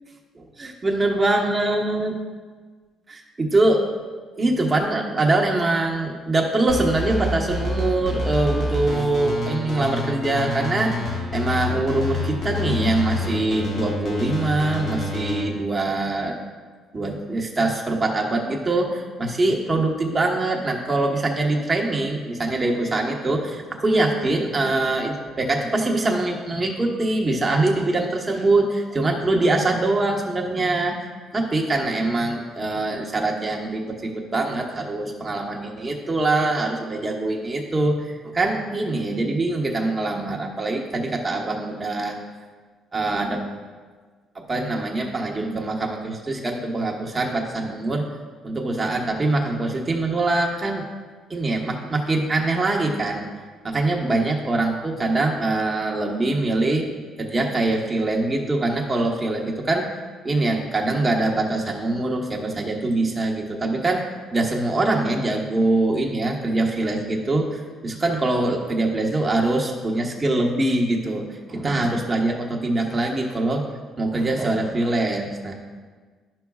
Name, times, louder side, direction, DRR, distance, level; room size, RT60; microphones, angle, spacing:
voice 1, 0.6-2.1 3.1-3.8 4.4-10.9 11.3-16.4 16.9-31.0 31.3-42.2 42.9-43.4 44.3-48.0 48.4-50.8 51.3-53.2 53.6-56.9 57.2-59.9 60.2-64.0 64.3-73.6 74.0-75.5, right 2 dB, 20° right, 0 dB, 1.0 m, -23 dB
sound 1, 6.7-15.4, left 2 dB, 50° left, 1.6 m, -28 dB
11.5 x 5.9 x 2.3 m, 1.5 s
cardioid pair, 120°, 0 cm